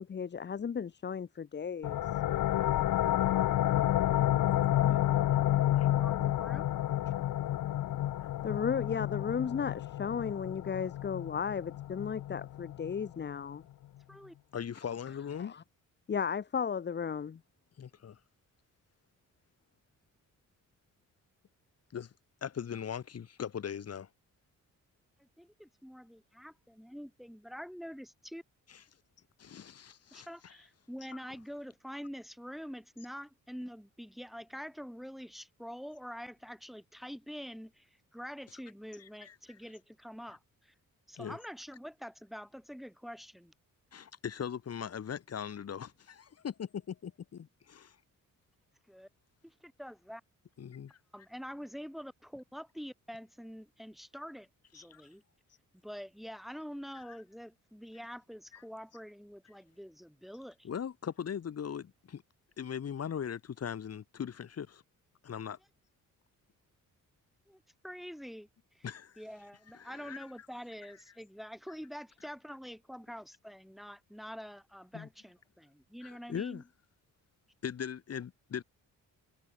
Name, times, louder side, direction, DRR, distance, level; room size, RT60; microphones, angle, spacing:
voice 1, 0.0-2.0 8.4-13.6 16.1-17.4, left 7 dB, 35° left, 1.3 m, -34 dB
sound 1, 1.8-13.2, left 13 dB, 85° left, 1.5 m, -30 dB
voice 2, 3.9-4.2 4.8-5.5 5.9-6.7 14.1-14.4 25.2-28.4 30.1-40.7 41.1-43.5 48.9-49.1 49.4-50.2 51.1-55.2 55.8-60.7 67.5-68.5 68.7-68.8 69.2-76.6, equal, ahead, 3.9 m, -46 dB
voice 3, 4.5-4.9 5.7-5.9 14.5-15.6 17.8-18.2 21.9-22.1 22.4-24.1 28.7-28.8 29.4-30.6 38.5-38.6 39.0-39.4 41.2-41.4 43.9-48.0 50.6-51.0 54.7-55.0 56.9-57.2 58.5-58.6 60.6-62.2 62.6-64.8 65.2-65.6 68.8-69.2 69.7-70.3 72.2-72.3 74.9-75.1 76.0-76.6 77.6-78.6, left 8 dB, 50° left, 6.4 m, -40 dB
wide cardioid pair, 155°, 32 cm